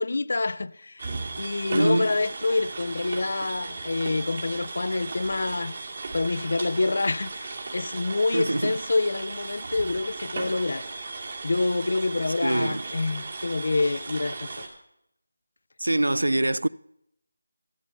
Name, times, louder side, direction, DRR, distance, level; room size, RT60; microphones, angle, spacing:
voice 1, 0.0-5.8 6.1-10.9 11.4-14.7, left 3 dB, 60° left, 0.5 m, -27 dB
sound 1, 1.0-14.7, right 3 dB, 50° right, 2.3 m, -36 dB
voice 2, 1.7-2.1 8.3-8.8 12.4-12.8 15.8-16.7, right 1 dB, 85° right, 0.3 m, -24 dB
14.0 x 8.4 x 5.6 m
figure-of-eight pair, 170°, 0 cm